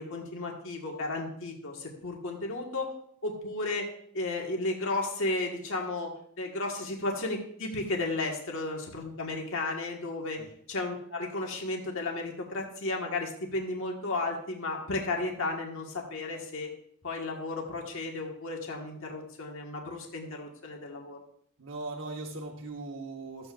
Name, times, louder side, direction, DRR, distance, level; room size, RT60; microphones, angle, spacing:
voice 1, 0.0-2.9 3.2-3.9 4.1-10.4 10.7-16.7 17.0-21.2, left 2 dB, 65° left, 0 dB, 1.6 m, -33 dB
voice 2, 21.6-23.5, right 2 dB, 65° right, -1 dB, 1.1 m, -39 dB
13.5 x 8.0 x 2.4 m, 0.64 s
head